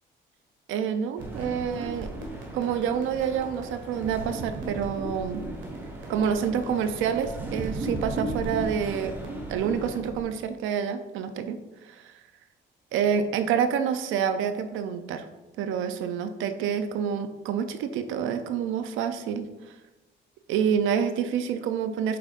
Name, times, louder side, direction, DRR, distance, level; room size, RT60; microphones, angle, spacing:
voice 1, 0.7-2.1 2.5-5.4 6.1-9.2 9.5-12.2 12.9-15.3 15.6-19.7 20.5-22.2, right 7 dB, 90° right, 9 dB, 0.5 m, -28 dB
sound 1, 1.2-10.0, right 1 dB, 10° right, 1.8 m, -44 dB
sound 2, 1.2-10.2, right 2 dB, 70° right, 1.7 m, -36 dB
7.6 x 5.1 x 2.5 m, 1.1 s
cardioid pair, 90°, 20 cm